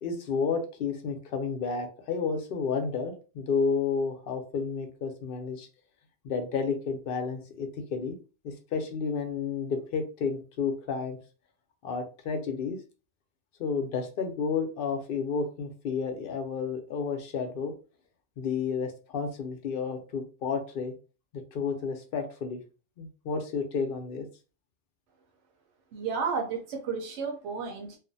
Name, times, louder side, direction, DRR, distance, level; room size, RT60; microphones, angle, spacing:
voice 1, 0.0-5.7 6.2-8.2 8.4-11.2 11.8-12.8 13.6-17.7 18.4-20.9 21.5-22.6 23.0-24.3, left 5 dB, 60° left, 6 dB, 0.7 m, -31 dB
voice 2, 25.9-28.0, right 5 dB, 80° right, 2 dB, 0.9 m, -32 dB
2.4 x 2.1 x 2.6 m, 0.34 s
omnidirectional pair, 1.2 m